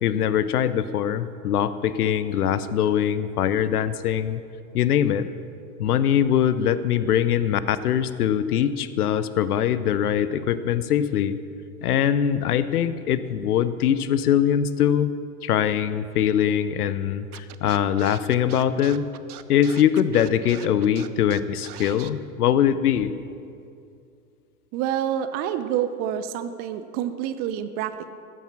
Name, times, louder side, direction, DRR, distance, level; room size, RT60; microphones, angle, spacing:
voice 1, 0.0-4.4 4.7-5.3 5.8-11.4 11.8-15.1 15.4-19.0 19.5-23.1, left 9 dB, 75° left, 14 dB, 0.7 m, -22 dB
Scratching (performance technique), 17.3-22.1, right 12 dB, 80° right, 0.6 m, -41 dB
voice 2, 24.7-28.1, right 10 dB, 25° right, 11 dB, 0.3 m, -27 dB
14.0 x 7.4 x 5.9 m, 2.5 s
hypercardioid pair, 100°, 45 cm